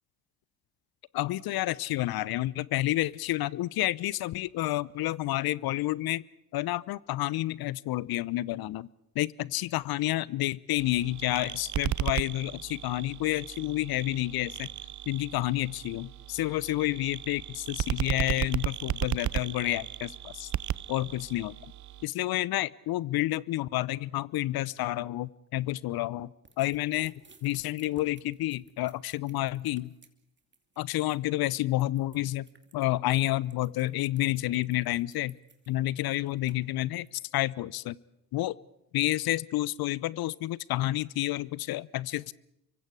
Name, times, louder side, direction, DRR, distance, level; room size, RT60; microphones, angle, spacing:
voice 1, 1.1-6.2 6.5-8.9 9.1-14.7 15.1-20.5 20.9-21.5 22.0-26.3 26.6-27.1 27.4-29.9 30.8-32.5 32.7-35.4 35.7-38.0 38.3-38.6 38.9-42.3, left 16 dB, 55° left, 23 dB, 0.7 m, -29 dB
sound 1, 10.8-22.0, right 12 dB, 40° right, 0.8 m, -35 dB
sound 2, 26.5-37.1, right 4 dB, 25° right, 2.7 m, -59 dB
29.0 x 24.0 x 4.9 m, 0.80 s
hypercardioid pair, 50°, 44 cm